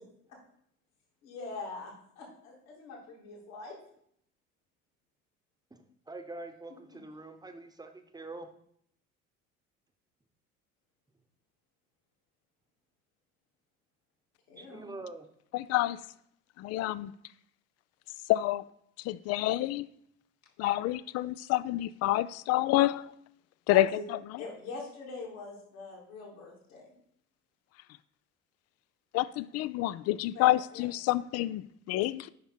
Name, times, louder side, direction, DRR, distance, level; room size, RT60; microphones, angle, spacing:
voice 1, 1.2-3.8 14.5-14.9 23.7-24.0 24.4-26.9 30.3-30.9, left 3 dB, 70° left, 3.0 m, -43 dB
voice 2, 5.7-8.5 14.6-15.3, right 2 dB, 10° right, 1.0 m, -45 dB
voice 3, 15.5-16.0 16.6-17.1 18.3-18.7 19.0-19.9 20.6-23.1 23.7-24.4 29.1-32.3, left 15 dB, 40° left, 0.4 m, -28 dB
8.5 x 5.7 x 4.4 m
figure-of-eight pair, 60°, 42 cm